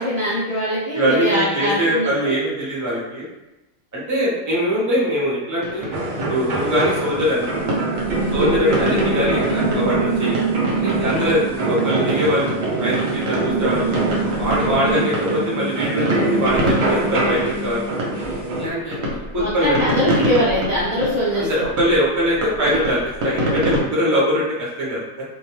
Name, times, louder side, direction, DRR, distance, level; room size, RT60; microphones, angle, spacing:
voice 1, 0.0-2.4 8.3-8.5 19.3-21.7, equal, 65° left, -9 dB, 0.3 m, -22 dB
voice 2, 0.9-3.3 3.9-5.9 6.2-7.7 8.3-10.3 10.7-12.5 12.8-13.9 14.4-17.9 18.6-19.8 21.3-24.4 24.8-25.2, equal, 20° right, -6 dB, 0.5 m, -22 dB
sound 1, 5.6-23.8, equal, 60° right, 0.8 m, -27 dB
sound 2, 5.9-18.7, right 3 dB, 75° right, 0.4 m, -23 dB
2.3 x 2.2 x 3.0 m, 0.96 s
omnidirectional pair, 1.4 m